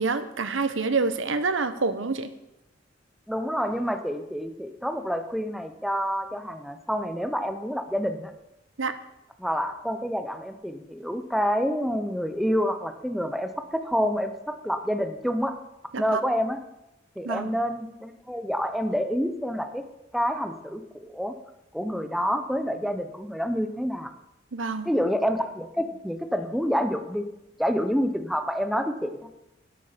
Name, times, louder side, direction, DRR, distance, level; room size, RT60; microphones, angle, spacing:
voice 1, 0.0-2.3 8.8-8.9 15.9-16.2 17.2-17.5 24.5-24.9, right 4 dB, 85° right, 11 dB, 1.0 m, -27 dB
voice 2, 3.3-8.3 9.4-15.5 16.0-16.6 17.2-19.8 20.1-21.4 21.7-24.1 24.8-27.3 27.6-29.3, equal, ahead, 8 dB, 0.7 m, -28 dB
12.0 x 11.5 x 5.1 m, 0.90 s
head